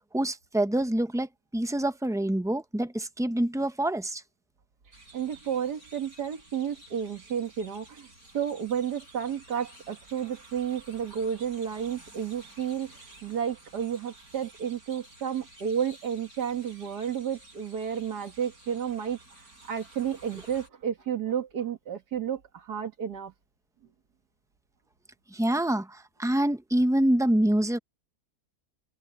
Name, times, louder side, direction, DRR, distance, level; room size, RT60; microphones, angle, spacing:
voice 1, 0.1-4.2 25.3-27.8, right 1 dB, 5° right, 0.4 m, -26 dB
sound 1, 4.9-20.7, right 1 dB, 65° right, 8.1 m, -53 dB
voice 2, 5.1-8.1 8.3-19.2 19.6-23.3, right 8 dB, 90° right, 2.4 m, -32 dB
omnidirectional pair, 1.7 m